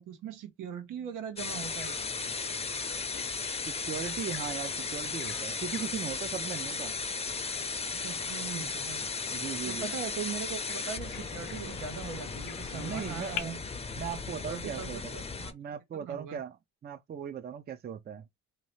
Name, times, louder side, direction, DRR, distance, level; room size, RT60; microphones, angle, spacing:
voice 1, 0.0-2.1 7.9-9.0 9.7-13.6 14.5-15.5 15.9-16.4, right 7 dB, 85° right, 1.0 m, -40 dB
sound 1, 1.4-15.5, left 4 dB, 20° left, 0.6 m, -36 dB
Bird vocalization bird call bird song, 1.6-13.4, left 10 dB, 80° left, 0.7 m, -47 dB
voice 2, 3.7-7.0 9.3-9.9 12.7-13.5 14.0-15.2 15.5-16.6 16.8-18.2, right 8 dB, 35° right, 0.5 m, -38 dB
2.9 x 2.7 x 3.1 m
cardioid pair, 90°, 30 cm